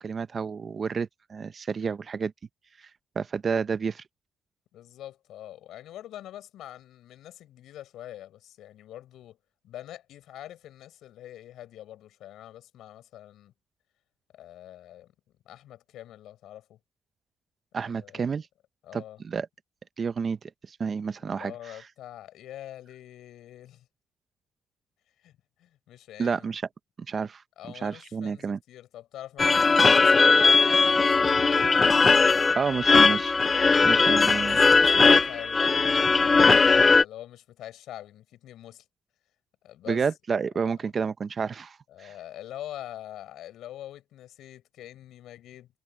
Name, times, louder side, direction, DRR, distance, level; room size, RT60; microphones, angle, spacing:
voice 1, 0.0-2.3 3.2-4.0 17.7-18.5 18.9-19.5 20.0-20.4 20.7-21.8 26.2-26.6 27.1-27.4 27.7-28.6 32.5-33.4 33.8-34.6 39.9-42.1, right 5 dB, 45° right, 0.8 m, -30 dB
voice 2, 4.7-9.4 9.6-13.5 14.3-15.1 15.4-16.8 18.0-18.2 18.8-19.2 21.2-23.9 25.2-25.3 25.6-26.5 27.6-31.5 32.4-33.0 34.1-38.8 39.6-40.0 40.6-40.7 41.9-45.7, left 12 dB, 80° left, 7.9 m, -44 dB
sound 1, 29.4-37.0, left 4 dB, 30° left, 0.8 m, -19 dB
cardioid pair, 90°, 0 cm